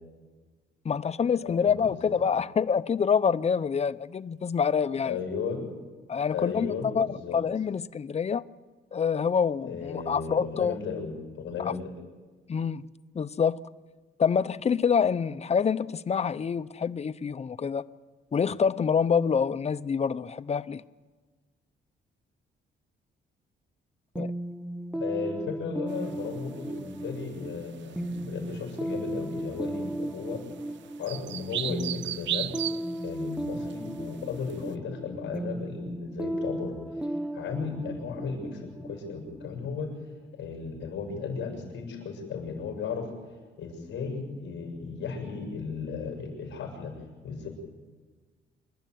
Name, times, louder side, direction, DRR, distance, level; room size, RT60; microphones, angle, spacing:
voice 1, 0.8-5.2 6.1-8.5 8.9-10.8 11.6-11.7 12.5-12.9 13.1-13.6 14.2-17.8 18.3-20.8 24.2-24.3, left 6 dB, 35° left, 0.7 m, -26 dB
voice 2, 1.4-1.7 2.0-2.2 5.0-5.7 6.3-7.4 9.6-11.9 24.9-30.4 31.0-32.5 33.0-39.9 40.3-43.1 43.6-47.5, left 5 dB, 65° left, 6.8 m, -35 dB
sound 1, 24.2-39.7, right 1 dB, 5° right, 0.7 m, -35 dB
sound 2, 25.9-34.7, right 12 dB, 70° right, 0.7 m, -37 dB
27.0 x 12.5 x 9.3 m
cardioid pair, 90°, 20 cm